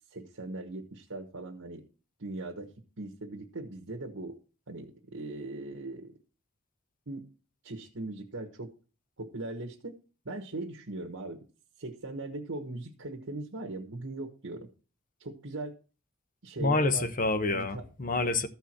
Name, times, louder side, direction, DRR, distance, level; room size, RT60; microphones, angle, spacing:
voice 1, 0.1-1.8 2.2-2.7 3.0-4.4 4.7-6.1 7.1-7.2 7.6-8.7 9.2-10.0 10.2-11.4 11.8-14.7 15.2-15.7 16.4-17.1 17.5-17.9 18.3-18.4, right 2 dB, 75° right, 1.4 m, -39 dB
voice 2, 16.6-18.5, left 3 dB, 40° left, 0.9 m, -27 dB
14.0 x 4.7 x 5.9 m
head